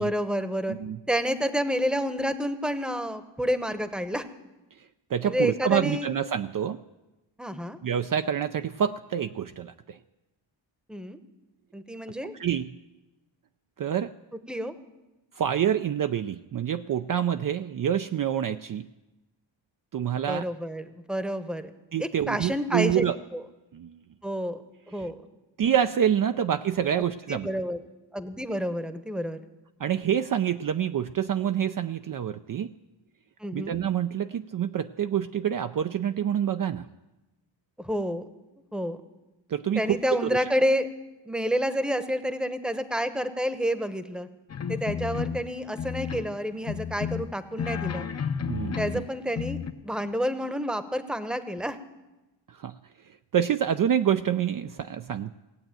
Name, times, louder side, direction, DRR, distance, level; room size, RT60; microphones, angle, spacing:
voice 1, 0.0-0.8 1.1-4.3 5.2-6.1 7.4-7.8 10.9-11.2 11.7-12.4 14.5-14.7 20.3-21.7 22.0-23.0 23.3-23.4 24.2-24.6 24.9-25.1 27.3-27.8 28.1-29.4 33.4-33.8 37.8-38.3 38.7-39.0 39.7-40.9 41.3-44.3 44.7-48.1 48.8-51.8, equal, ahead, 11 dB, 0.9 m, -29 dB
voice 2, 0.7-1.0 4.7-6.8 7.8-10.0 12.3-12.8 13.8-14.1 15.3-18.9 19.9-20.5 21.9-23.2 23.7-24.0 24.9-25.1 25.6-27.5 29.8-32.7 33.5-36.9 39.5-40.4 48.5-49.1 52.5-52.8 53.0-55.3, right 9 dB, 45° right, 9 dB, 0.5 m, -27 dB
sound 1, 44.5-45.5 45.8-46.4 46.6-49.1 49.4-49.7, left 7 dB, 35° left, 0.7 m, -32 dB
17.0 x 7.9 x 9.0 m, 1.1 s
cardioid pair, 85°, 47 cm